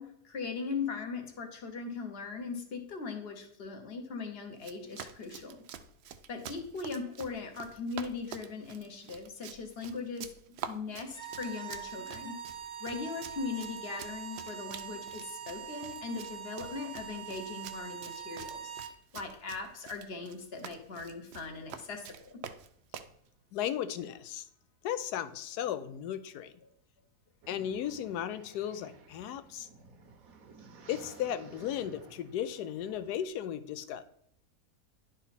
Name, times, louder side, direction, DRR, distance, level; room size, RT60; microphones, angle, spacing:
voice 1, 0.0-5.6 6.3-10.4 10.7-12.4 12.8-18.7 19.1-22.4, left 4 dB, 45° left, 5 dB, 1.1 m, -39 dB
Run, 4.5-23.2, right 8 dB, 80° right, 0.5 m, -47 dB
sound 1, 11.1-19.0, right 8 dB, 50° right, 1.0 m, -43 dB
voice 2, 23.5-24.5 24.8-26.5 27.5-29.7 30.9-34.0, left 10 dB, 80° left, 13 dB, 1.1 m, -35 dB
sound 2, 27.4-33.2, right 4 dB, 65° right, 1.3 m, -54 dB
10.5 x 4.0 x 4.2 m, 0.72 s
omnidirectional pair, 1.7 m